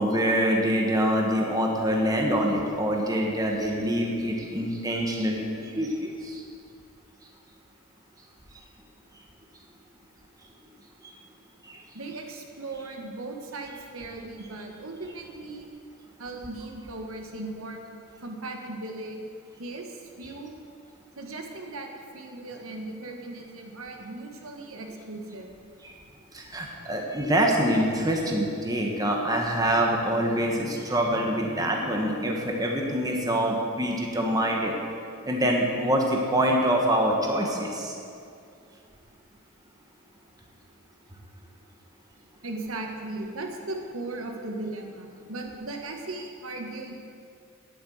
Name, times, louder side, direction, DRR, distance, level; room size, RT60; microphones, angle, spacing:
voice 1, 0.0-6.4 11.6-11.8 25.8-25.9 26.3-34.7 35.2-37.9, equal, 15° right, 0 dB, 1.3 m, -25 dB
voice 2, 11.9-15.7 16.2-17.8 18.2-19.2 19.6-20.5 21.1-25.5 42.4-46.9, right 2 dB, 70° right, 2 dB, 1.5 m, -37 dB
10.5 x 9.3 x 7.9 m, 2.4 s
head